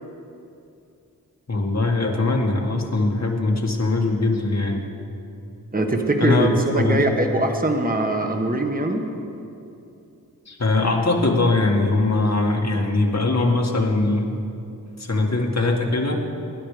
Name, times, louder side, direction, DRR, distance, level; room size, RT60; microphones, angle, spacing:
voice 1, 1.5-4.8 6.2-7.1 10.5-14.3 15.0-16.2, left 2 dB, 45° left, 1 dB, 1.9 m, -21 dB
voice 2, 5.7-9.0, right 1 dB, 25° right, 3 dB, 1.3 m, -22 dB
23.5 x 10.5 x 5.0 m, 2.7 s
wide cardioid pair, 80°, 37 cm